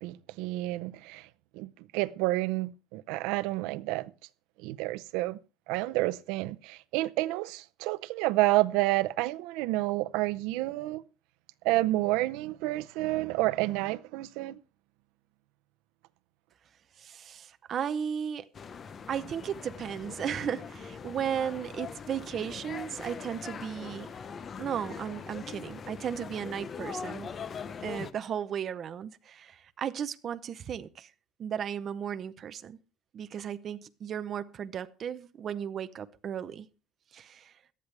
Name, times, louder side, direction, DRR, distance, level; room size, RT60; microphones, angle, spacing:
voice 1, 0.0-1.3 1.5-4.1 4.6-5.4 5.7-11.0 11.6-14.6, right 18 dB, 85° right, 0.6 m, -29 dB
voice 2, 17.0-18.5 19.1-24.1 24.6-27.3 27.8-31.1 31.4-32.8 33.1-36.7 37.1-37.5, right 8 dB, 30° right, 0.6 m, -35 dB
sound 1, 18.5-28.1, left 6 dB, 25° left, 0.7 m, -42 dB
18.0 x 12.0 x 3.3 m
cardioid pair, 180°, 0 cm